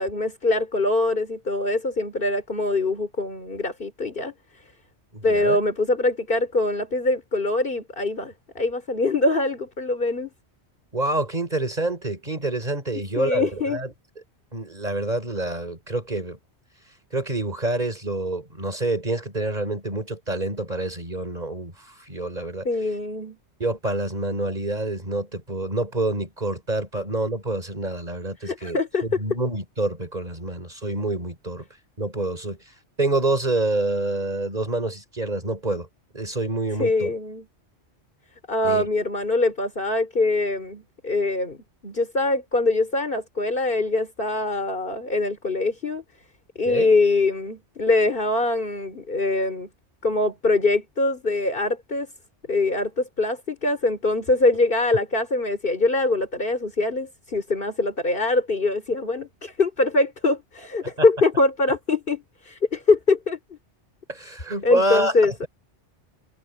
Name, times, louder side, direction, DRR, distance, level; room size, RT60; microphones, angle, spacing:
voice 1, 0.0-4.6 5.2-10.3 13.2-13.8 22.6-23.4 28.4-29.1 36.8-37.5 38.5-41.6 41.8-46.0 46.6-49.7 50.0-52.1 52.5-63.4 64.6-65.3, left 2 dB, 50° left, 3.6 m, -23 dB
voice 2, 5.1-5.6 10.9-13.9 14.5-16.4 17.1-21.7 22.1-22.7 23.6-31.7 32.0-32.6 33.0-35.9 36.1-37.1 38.6-38.9 46.7-46.9 60.8-61.1 64.1-65.1, right 2 dB, 35° right, 5.2 m, -27 dB
omnidirectional pair, 1.2 m